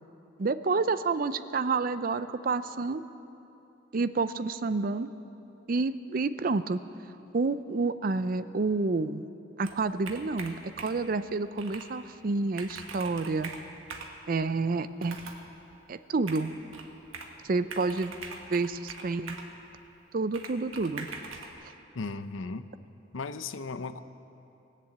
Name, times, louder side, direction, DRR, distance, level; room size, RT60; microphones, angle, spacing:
voice 1, 0.4-3.0 3.9-5.1 5.7-6.8 7.3-9.2 9.6-13.5 14.3-15.2 15.9-16.5 17.4-18.2 18.5-19.4 20.1-21.1 21.6-21.7, right 3 dB, 45° right, 13 dB, 0.5 m, -29 dB
Computer keyboard, 9.6-11.1 11.6-11.9 12.3-12.4 12.5-14.2 15.0-15.5 16.3-17.4 17.7-19.5 20.3-21.5, right 4 dB, 90° right, 1.5 m, -43 dB
voice 2, 21.9-22.7 23.1-24.0, left 4 dB, 80° left, 12 dB, 0.6 m, -36 dB
19.5 x 7.6 x 8.5 m, 2.9 s
head